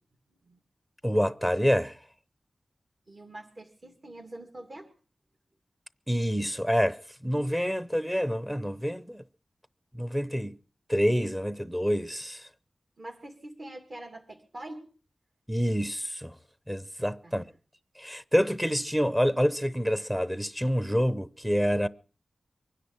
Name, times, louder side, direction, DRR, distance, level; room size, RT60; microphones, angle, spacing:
voice 1, 1.0-2.0 6.1-9.2 9.9-10.6 10.9-12.5 15.5-16.3 16.7-17.4 18.0-21.9, equal, 5° right, 0.7 m, -27 dB
voice 2, 3.1-4.9 13.0-14.9 17.2-17.5, right 1 dB, 50° right, 2.5 m, -44 dB
23.5 x 10.0 x 6.0 m
wide cardioid pair, 100°, 0 cm